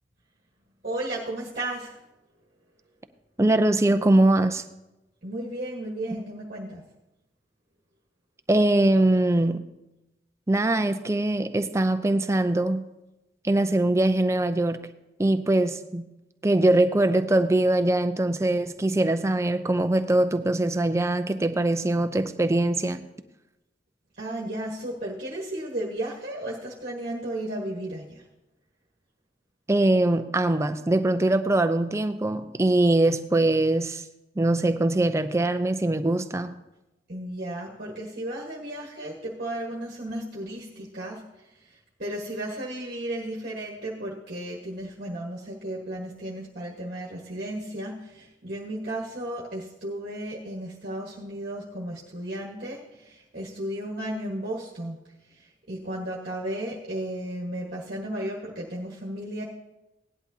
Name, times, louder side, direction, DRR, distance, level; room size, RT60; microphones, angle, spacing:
voice 1, 0.8-2.0 5.2-6.8 24.2-28.2 37.1-55.0 55.3-59.4, right 1 dB, 50° right, -3 dB, 1.4 m, -34 dB
voice 2, 3.4-4.6 8.5-9.6 10.5-12.8 13.4-14.8 15.2-16.1 16.4-23.1 29.7-34.0 34.4-36.5, right 2 dB, 15° right, 9 dB, 0.5 m, -22 dB
17.5 x 11.0 x 2.8 m, 0.97 s
head